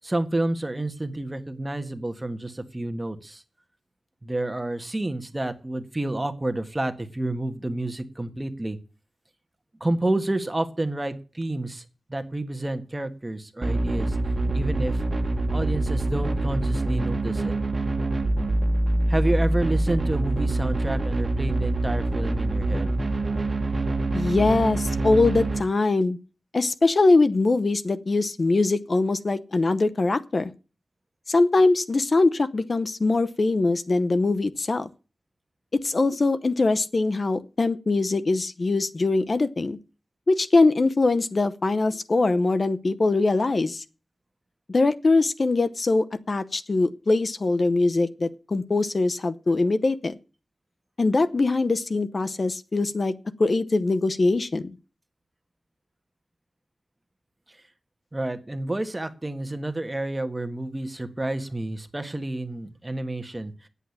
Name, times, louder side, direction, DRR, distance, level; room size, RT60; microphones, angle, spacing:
voice 1, 0.0-3.4 4.2-8.8 9.8-11.8 12.1-14.2 14.5-15.0 15.5-17.6 19.1-22.9 58.1-63.7, right 1 dB, 25° right, 8 dB, 1.6 m, -29 dB
sound 1, 13.6-25.6, right 2 dB, 45° right, 1.8 m, -25 dB
voice 2, 24.1-26.2 26.5-30.5 31.3-34.9 35.8-39.8 40.3-43.8 44.7-50.1 51.0-53.1 53.4-54.7, left 3 dB, 55° left, 12 dB, 0.8 m, -22 dB
10.0 x 8.3 x 7.2 m, 0.34 s
wide cardioid pair, 75°, 0 cm